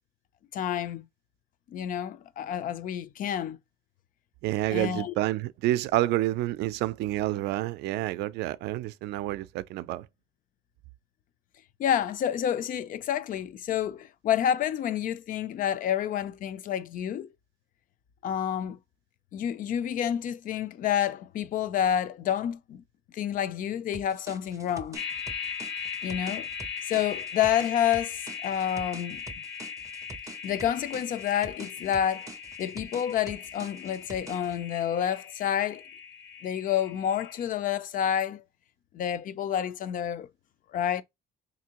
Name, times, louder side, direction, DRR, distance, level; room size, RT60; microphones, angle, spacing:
voice 1, 0.5-1.1 1.7-3.6 4.7-5.1 11.8-17.3 18.2-18.8 19.3-22.8 23.1-25.0 26.0-26.5 26.9-29.2 30.4-32.3 32.6-35.8 36.4-38.4 38.9-40.3 40.7-41.0, left 9 dB, 55° left, 0.5 m, -29 dB
voice 2, 4.4-10.0, right 15 dB, 80° right, 0.4 m, -28 dB
sound 1, 23.9-34.6, right 4 dB, 20° right, 0.5 m, -46 dB
sound 2, 24.9-37.4, left 6 dB, 80° left, 1.2 m, -39 dB
3.4 x 2.7 x 2.9 m
cardioid pair, 110°, 17 cm